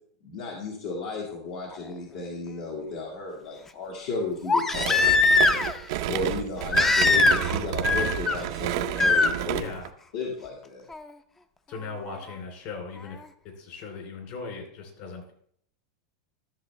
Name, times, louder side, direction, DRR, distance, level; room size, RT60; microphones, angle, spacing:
voice 1, 0.2-5.6 6.0-9.6 10.1-10.9, left 3 dB, 70° left, -2 dB, 1.9 m, -34 dB
Crying sobbing, 1.7-1.8 4.5-5.8 6.7-7.6 7.8-8.4 9.0-9.3 10.9-11.0, left 3 dB, 15° left, 0.5 m, -21 dB
sound 1, 4.7-9.9, right 12 dB, 65° right, 0.6 m, -31 dB
voice 2, 9.6-9.9 11.7-13.2 13.4-15.3, left 4 dB, 55° left, 3 dB, 3.0 m, -38 dB
13.0 x 6.6 x 3.2 m, 0.65 s
supercardioid pair, 130°, 2 cm